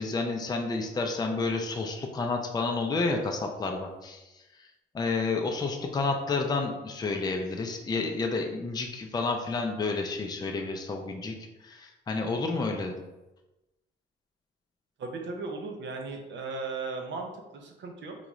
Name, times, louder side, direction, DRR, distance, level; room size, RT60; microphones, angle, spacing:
voice 1, 0.0-4.2 4.9-11.3 11.6-12.9, left 3 dB, 20° left, 2 dB, 0.4 m, -30 dB
voice 2, 15.0-18.2, right 3 dB, 65° right, 3 dB, 0.7 m, -36 dB
3.9 x 2.3 x 3.0 m, 1.0 s
cardioid pair, 90°, 20 cm